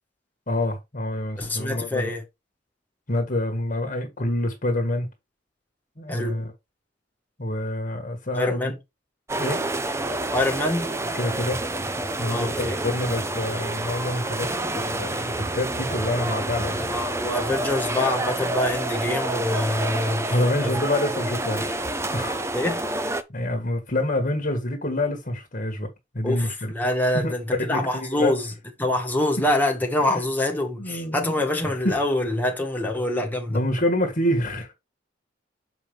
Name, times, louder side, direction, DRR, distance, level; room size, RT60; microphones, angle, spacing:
voice 1, 0.5-2.1 3.1-5.1 6.0-6.5 7.4-8.7 9.4-9.6 11.1-11.6 12.2-14.5 14.7-17.1 20.3-21.8 22.1-22.4 23.3-25.9 26.1-26.7 27.1-27.3 27.7-28.4 30.1-30.2 30.8-31.3 31.8-32.0 33.5-34.7, left 1 dB, 45° left, 1.6 m, -27 dB
voice 2, 1.4-2.2 6.1-6.4 8.3-8.8 10.3-10.9 12.3-12.8 16.8-20.4 20.6-20.8 22.5-22.8 26.2-28.5 28.8-33.6, left 1 dB, 10° left, 1.7 m, -25 dB
Swimming pool indoor close, 9.3-23.2, right 2 dB, 15° right, 0.6 m, -28 dB
6.9 x 5.2 x 3.4 m
head